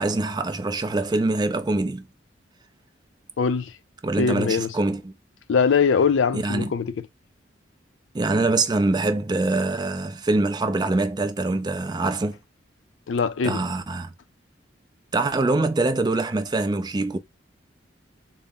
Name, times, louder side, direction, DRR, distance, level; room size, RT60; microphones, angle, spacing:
voice 1, 0.0-2.0 4.0-5.1 6.3-6.7 8.1-12.4 13.4-14.1 15.1-17.2, right 2 dB, 20° right, 0.4 m, -24 dB
voice 2, 3.4-3.7 4.2-4.7 5.5-7.1 13.1-13.6, left 5 dB, 70° left, 0.4 m, -22 dB
4.0 x 2.0 x 3.5 m
head